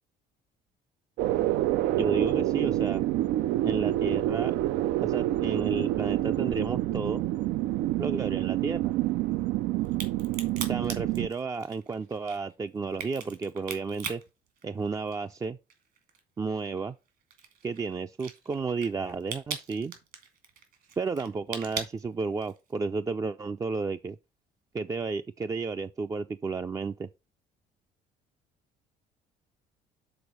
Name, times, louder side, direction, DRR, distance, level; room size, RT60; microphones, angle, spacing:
sound 1, 1.2-11.3, right 15 dB, 90° right, 0.4 m, -27 dB
voice 1, 1.9-3.0 3.6-4.5 5.0-7.2 8.0-8.9 10.7-14.2 14.6-15.6 16.4-16.9 17.6-19.9 21.0-24.2 24.7-27.1, right 4 dB, 20° right, 0.3 m, -32 dB
Crack, 9.8-15.4 15.7-22.7, right 7 dB, 70° right, 2.4 m, -40 dB
7.0 x 4.0 x 6.1 m
cardioid pair, 110°, 17 cm